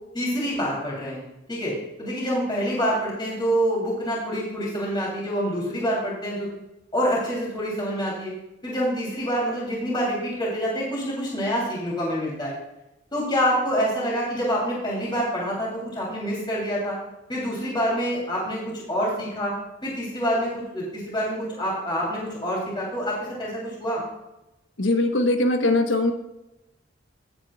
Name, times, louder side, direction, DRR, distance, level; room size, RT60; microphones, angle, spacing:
voice 1, 0.1-1.2 1.5-6.5 6.9-8.3 8.6-12.5 13.1-17.0 17.3-19.5 19.8-24.0, equal, 25° left, -5 dB, 3.1 m, -26 dB
voice 2, 24.8-26.1, left 2 dB, 70° left, 6 dB, 1.1 m, -21 dB
17.0 x 8.2 x 2.4 m, 0.94 s
head